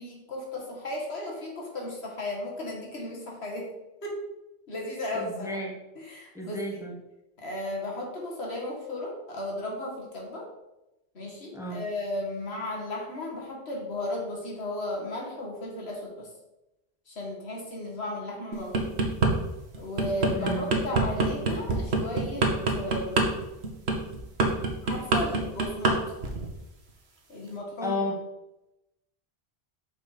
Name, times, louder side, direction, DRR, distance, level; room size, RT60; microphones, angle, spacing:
voice 1, 0.0-3.7 4.0-4.2 4.7-5.6 6.0-6.6 7.4-10.5 11.1-16.3 17.1-19.0 19.8-23.4 24.8-26.0 27.3-28.0, left 1 dB, 80° left, -2 dB, 1.9 m, -35 dB
voice 2, 5.1-5.7 6.3-7.0 11.5-11.8 20.3-20.8 27.8-28.2, left 1 dB, 5° right, -2 dB, 1.2 m, -32 dB
sound 1, 18.5-19.3 19.7-26.0 26.2-26.5, right 3 dB, 85° right, 1.3 m, -24 dB
6.4 x 4.1 x 5.0 m, 0.95 s
omnidirectional pair, 1.1 m